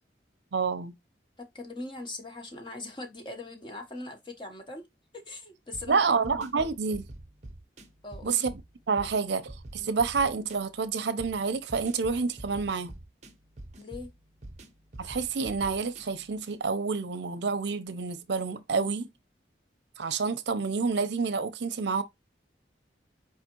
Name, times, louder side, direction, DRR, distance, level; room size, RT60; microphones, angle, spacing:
voice 1, 0.5-0.9 5.9-7.0 8.2-8.6 8.9-12.9 15.0-19.1 20.0-22.0, right 5 dB, 75° right, 0.6 m, -28 dB
voice 2, 1.4-4.9 5.1-6.1 8.0-8.4 9.8-9.9 13.8-14.1 18.7-19.1, left 2 dB, 25° left, 0.9 m, -41 dB
sound 1, 5.7-16.6, right 1 dB, 40° right, 0.8 m, -47 dB
4.8 x 3.5 x 2.9 m
head